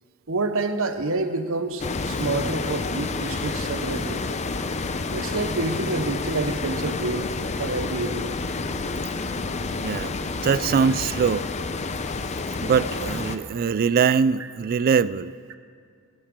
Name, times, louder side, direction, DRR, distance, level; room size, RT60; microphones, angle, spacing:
voice 1, 0.3-4.2 5.1-7.3 7.6-8.3 15.5-15.6, right 3 dB, 65° right, 8 dB, 0.9 m, -28 dB
sound 1, 1.8-13.4, left 3 dB, 30° left, 0.6 m, -29 dB
voice 2, 9.8-11.5 12.6-15.3, right 6 dB, 40° right, 17 dB, 0.3 m, -22 dB
23.0 x 12.0 x 3.7 m, 2.1 s
head